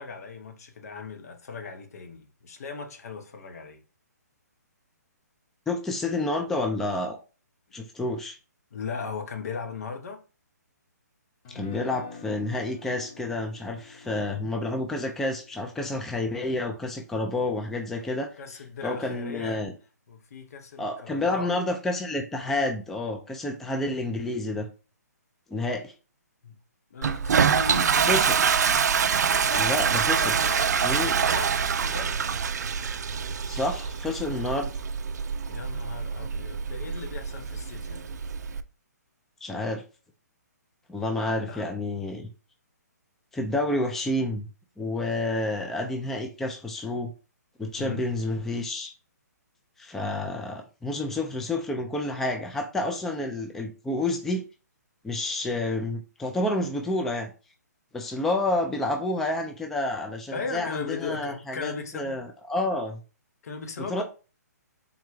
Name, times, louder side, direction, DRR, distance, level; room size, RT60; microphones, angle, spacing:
voice 1, 0.0-3.8 7.7-7.8 8.7-10.2 18.0-19.7 20.1-21.7 26.4-26.6 26.9-28.3 29.2-29.7 30.2-30.7 31.0-32.3 35.5-38.1 41.5-41.6 47.8-48.0 60.3-62.2 63.4-64.0, left 5 dB, 60° left, 0.8 m, -37 dB
voice 2, 5.7-7.2 7.7-8.4 11.5-18.3 18.8-19.7 20.8-24.7 25.5-25.9 28.1-28.3 29.6-30.2 30.8-31.2 33.5-34.7 39.4-39.8 40.9-42.3 43.3-44.5 44.8-47.1 47.6-48.9 49.8-54.4 55.0-57.3 57.9-63.0 63.9-64.0, left 2 dB, 5° left, 0.3 m, -29 dB
Guitar, 11.4-17.6, left 4 dB, 35° left, 1.0 m, -46 dB
Toilet flush, 27.0-38.6, right 6 dB, 70° right, 0.4 m, -25 dB
3.8 x 2.2 x 4.5 m
hypercardioid pair, 145°, 9 cm